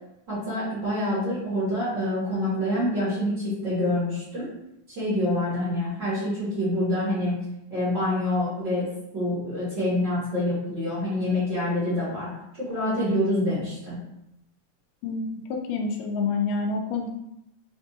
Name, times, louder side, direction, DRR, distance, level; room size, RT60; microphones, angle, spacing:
voice 1, 0.3-4.5 4.9-7.3 7.7-8.9 9.1-12.3 12.5-14.0, left 1 dB, 40° right, -10 dB, 1.9 m, -26 dB
voice 2, 15.0-17.1, left 4 dB, 80° left, 2 dB, 2.1 m, -28 dB
5.3 x 3.5 x 2.7 m, 0.82 s
omnidirectional pair, 4.0 m